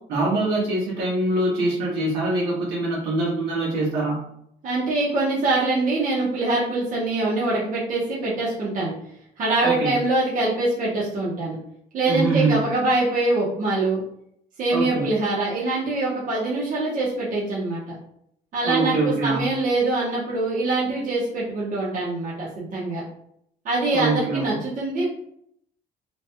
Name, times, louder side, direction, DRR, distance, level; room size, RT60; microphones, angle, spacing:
voice 1, 0.1-4.2 9.6-10.0 12.0-12.6 14.7-15.1 18.6-19.6 23.9-24.5, right 2 dB, 80° right, -5 dB, 1.4 m, -24 dB
voice 2, 4.6-8.9 9.4-11.6 11.9-14.0 14.6-18.0 18.5-23.0 23.6-25.1, right 2 dB, 50° right, -6 dB, 1.0 m, -24 dB
3.1 x 2.8 x 2.2 m, 0.71 s
cardioid pair, 110°, 17 cm